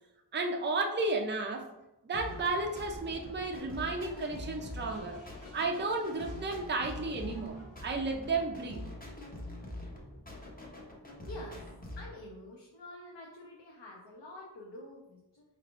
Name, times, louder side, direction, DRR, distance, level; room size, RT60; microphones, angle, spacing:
voice 1, 0.3-1.7 2.0-5.2 5.5-8.9, right 3 dB, 25° right, 2 dB, 0.5 m, -33 dB
sound 1, 2.1-12.1, left 1 dB, 20° left, 0.8 m, -45 dB
sound 2, 2.3-10.2, equal, 85° left, 1.4 m, -55 dB
voice 2, 11.3-11.6 12.0-15.4, left 1 dB, 70° left, -3 dB, 0.8 m, -47 dB
4.6 x 3.4 x 2.5 m, 0.97 s
wide cardioid pair, 105°, 45 cm